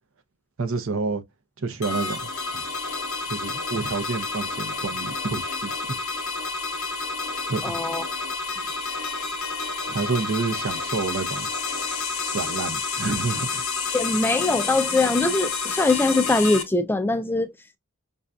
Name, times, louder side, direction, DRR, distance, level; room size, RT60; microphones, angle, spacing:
voice 1, 0.6-1.2 1.6-2.6 3.3-6.0 7.5-7.7 9.9-11.5 12.3-13.6, right 4 dB, 65° right, 0.7 m, -29 dB
sound 1, 1.8-16.6, left 4 dB, 80° left, 0.8 m, -29 dB
voice 2, 7.6-8.0 13.9-17.5, left 2 dB, 10° left, 0.3 m, -22 dB
5.3 x 2.5 x 2.3 m
head